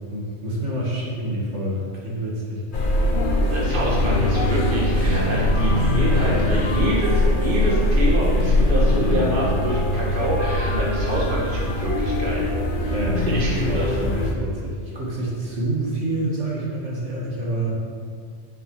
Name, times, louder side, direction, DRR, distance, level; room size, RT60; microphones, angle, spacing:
voice 1, 0.1-2.6 3.1-3.3 6.2-6.5 12.9-17.8, right 1 dB, 75° right, -5 dB, 2.8 m, -28 dB
sound 1, 2.7-14.3, left 1 dB, 45° left, 1.1 m, -21 dB
voice 2, 3.5-12.5 12.8-13.9, right 1 dB, 45° right, -5 dB, 1.8 m, -26 dB
9.5 x 7.3 x 6.4 m, 2.1 s
omnidirectional pair, 1.2 m